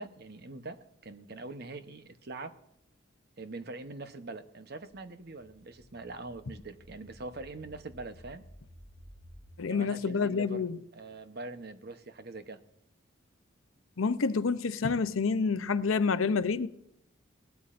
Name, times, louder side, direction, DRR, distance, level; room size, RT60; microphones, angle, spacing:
voice 1, 0.0-2.6 3.4-8.4 9.7-10.6 10.9-12.6, right 2 dB, 50° right, 0.9 m, -43 dB
sound 1, 4.9-9.5, equal, 10° left, 1.6 m, -54 dB
voice 2, 9.6-10.8 14.0-16.7, left 5 dB, 85° left, 0.6 m, -28 dB
19.5 x 12.5 x 2.6 m
head